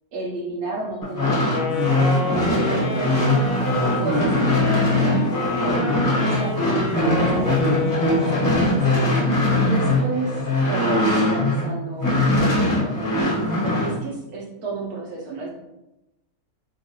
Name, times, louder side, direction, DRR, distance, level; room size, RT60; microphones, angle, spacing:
voice 1, 0.1-2.1 2.6-3.4 4.0-5.8 6.2-9.0 9.6-13.2 13.6-15.5, right 3 dB, 90° right, -5 dB, 1.2 m, -33 dB
sound 1, 1.0-11.7 12.0-13.9, left 1 dB, 15° left, 0.8 m, -21 dB
Wind instrument woodwind instrument, 1.4-8.7, left 3 dB, 50° left, 0.6 m, -29 dB
3.7 x 2.3 x 2.7 m, 0.93 s
omnidirectional pair, 1.5 m